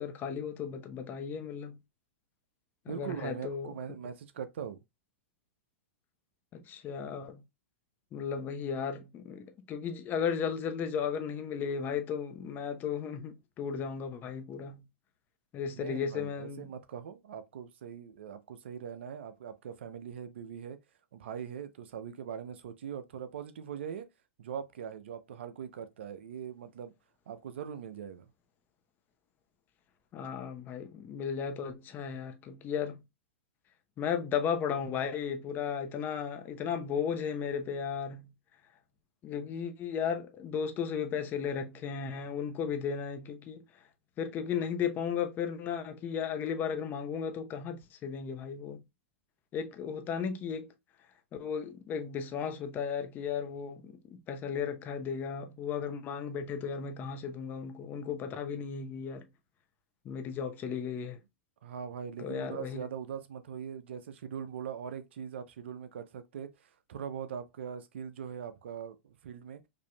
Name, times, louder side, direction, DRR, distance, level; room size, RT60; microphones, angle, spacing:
voice 1, 0.0-1.8 2.9-3.7 6.5-7.4 8.1-14.8 15.5-16.7 30.1-33.0 34.0-38.3 39.2-43.6 44.2-48.8 49.5-50.7 51.4-59.3 60.0-61.2 62.2-62.8, left 7 dB, 30° left, 0.8 m, -35 dB
voice 2, 2.9-4.8 15.7-20.8 21.1-24.1 24.4-26.9 27.3-28.3 61.6-69.6, right 8 dB, 70° right, 0.7 m, -41 dB
5.0 x 2.8 x 2.2 m
hypercardioid pair, 115°, 6 cm